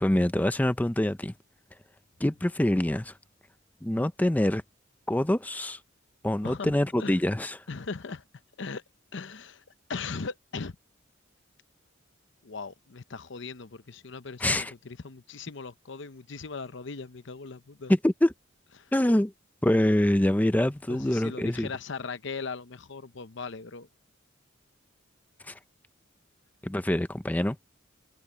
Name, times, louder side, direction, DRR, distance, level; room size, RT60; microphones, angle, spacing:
voice 1, 0.0-1.3 2.2-3.1 3.8-4.6 5.1-5.8 6.2-7.6 14.4-14.7 17.9-18.3 18.9-19.3 19.6-21.7 25.4-25.6 26.6-27.6, left 1 dB, 10° left, 0.5 m, -25 dB
voice 2, 7.7-8.2 8.6-8.8 9.1-9.6 9.9-10.8 12.4-17.9 18.8-18.9 20.9-23.9, left 4 dB, 65° left, 0.8 m, -38 dB
head